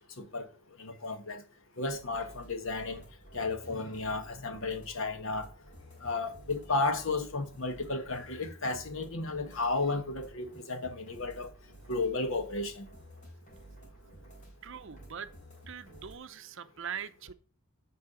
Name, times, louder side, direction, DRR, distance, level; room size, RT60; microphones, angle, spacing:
voice 1, 0.8-1.4 1.8-3.0 3.3-5.5 6.0-11.5 11.9-12.9, left 3 dB, 65° left, 1.4 m, -33 dB
sound 1, 1.9-16.1, right 1 dB, 35° left, 3.4 m, -52 dB
voice 2, 14.6-15.3 15.7-17.3, right 7 dB, 60° right, 0.7 m, -42 dB
8.5 x 4.8 x 6.9 m
head